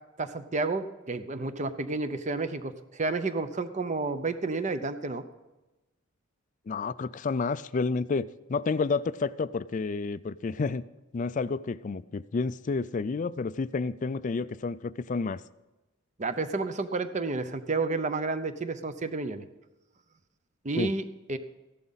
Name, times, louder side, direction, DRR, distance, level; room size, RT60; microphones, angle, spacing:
voice 1, 0.2-5.2 16.2-19.4 20.6-21.4, right 3 dB, 35° right, 11 dB, 0.7 m, -31 dB
voice 2, 6.7-10.8 11.1-15.4 20.7-20.9, left 4 dB, 35° left, 16 dB, 0.3 m, -30 dB
14.5 x 11.0 x 4.1 m, 1.1 s
head